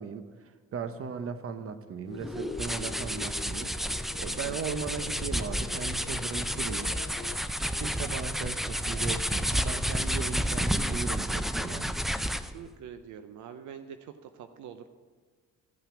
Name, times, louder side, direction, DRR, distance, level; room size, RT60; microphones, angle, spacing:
voice 1, 0.0-6.9 7.8-12.0, right 6 dB, 50° right, 10 dB, 0.9 m, -37 dB
sound 1, 2.0-7.4, left 9 dB, 45° left, 0.7 m, -45 dB
sound 2, 2.2-12.6, equal, ahead, 0.4 m, -31 dB
voice 2, 12.3-14.1 14.4-14.8, right 8 dB, 75° right, 9 dB, 0.7 m, -45 dB
14.5 x 5.7 x 6.0 m, 1.5 s
cardioid pair, 90°, 30 cm